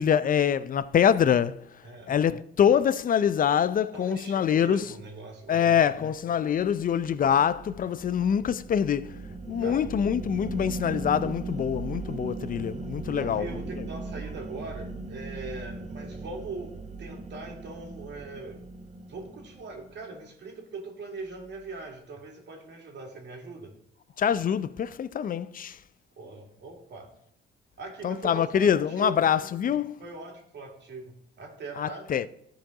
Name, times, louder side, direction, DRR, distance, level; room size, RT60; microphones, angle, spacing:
voice 1, 0.0-1.6 2.1-4.9 5.5-9.2 9.5-13.5 13.8-13.9 24.2-25.8 28.0-30.0 31.8-32.3, left 8 dB, 45° left, 0.5 m, -25 dB
voice 2, 1.8-2.1 3.9-5.7 9.6-9.8 13.0-18.6 19.1-23.7 26.2-27.1 27.8-29.2 30.0-32.1, right 3 dB, 60° right, 2.5 m, -41 dB
sound 1, 5.7-20.1, right 3 dB, 35° right, 0.9 m, -39 dB
13.5 x 4.8 x 3.8 m
cardioid pair, 90°, 20 cm